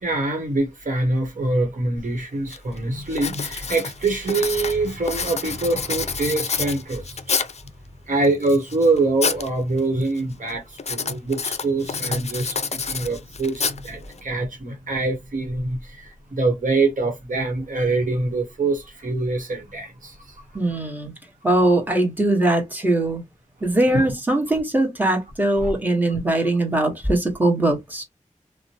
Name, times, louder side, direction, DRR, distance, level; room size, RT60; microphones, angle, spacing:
voice 1, 0.0-7.5 8.1-20.4 20.7-20.8 23.9-24.1 25.6-25.7, right 2 dB, 80° right, 1.0 m, -24 dB
Writing, 2.0-2.1 2.5-2.8 3.1-7.7 8.2-9.5 9.8-10.2 10.8-14.2, left 5 dB, 55° left, 0.4 m, -28 dB
voice 2, 20.5-21.1 21.4-23.2 23.6-28.0, right 1 dB, 15° right, 1.2 m, -21 dB
2.9 x 2.1 x 2.8 m
wide cardioid pair, 55°, 13 cm